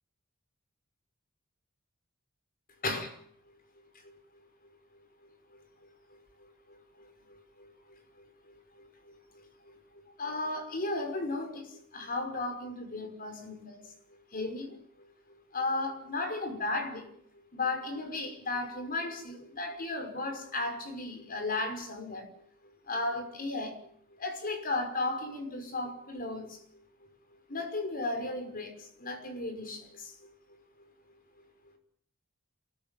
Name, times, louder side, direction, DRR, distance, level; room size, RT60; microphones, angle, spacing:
voice 1, 2.8-3.2 4.0-4.1 5.5-5.6 6.7-7.7 8.5-9.8 10.2-13.9 14.3-14.8 15.5-17.1 17.5-22.3 22.9-23.8 24.2-26.6 27.5-30.3, left 2 dB, 45° left, 5.8 m, -35 dB
28.0 x 14.5 x 9.2 m
head